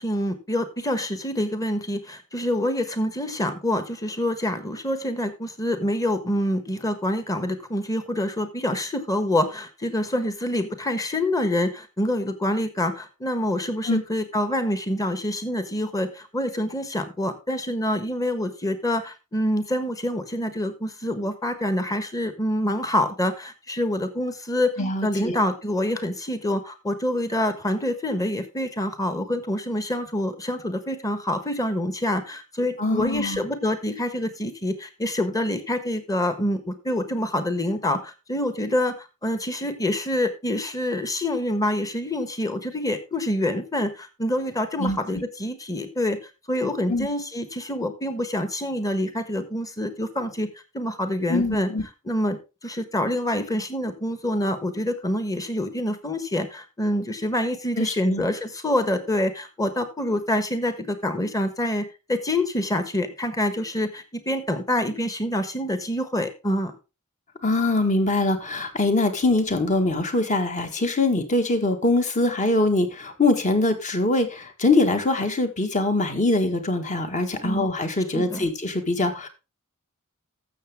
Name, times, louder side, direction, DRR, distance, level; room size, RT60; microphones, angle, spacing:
voice 1, 0.0-24.7 25.0-46.2 46.5-50.5 50.7-51.7 52.0-66.7 77.4-77.6 78.1-78.5, left 1 dB, 15° left, 10 dB, 1.3 m, -26 dB
voice 2, 24.8-25.4 32.8-33.4 44.8-45.0 46.9-47.1 51.3-51.8 57.7-58.2 67.4-79.3, left 2 dB, 35° left, 7 dB, 1.6 m, -23 dB
13.0 x 7.3 x 3.6 m, 0.28 s
head